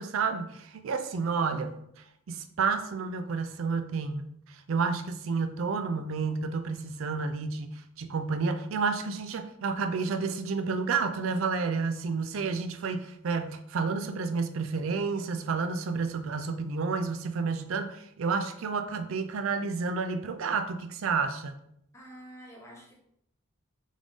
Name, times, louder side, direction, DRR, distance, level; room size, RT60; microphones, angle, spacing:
voice 1, 0.0-1.7 2.3-21.6, right 4 dB, 75° right, 8 dB, 0.4 m, -30 dB
voice 2, 21.9-23.0, right 1 dB, 15° left, -3 dB, 1.0 m, -48 dB
3.6 x 3.6 x 3.7 m, 0.73 s
head